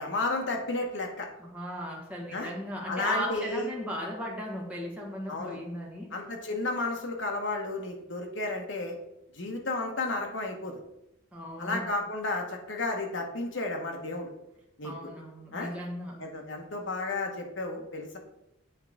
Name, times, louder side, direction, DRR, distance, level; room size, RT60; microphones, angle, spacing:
voice 1, 0.0-1.3 2.3-2.5 2.9-3.7 5.3-5.6 6.1-9.0 9.3-10.7 11.6-14.3 14.8-14.9 15.5-15.7 16.2-18.2, left 2 dB, 65° left, 2 dB, 1.0 m, -32 dB
voice 2, 1.4-6.1 11.3-11.9 14.8-16.2, equal, 5° right, -3 dB, 1.1 m, -36 dB
8.3 x 3.5 x 3.4 m, 0.88 s
head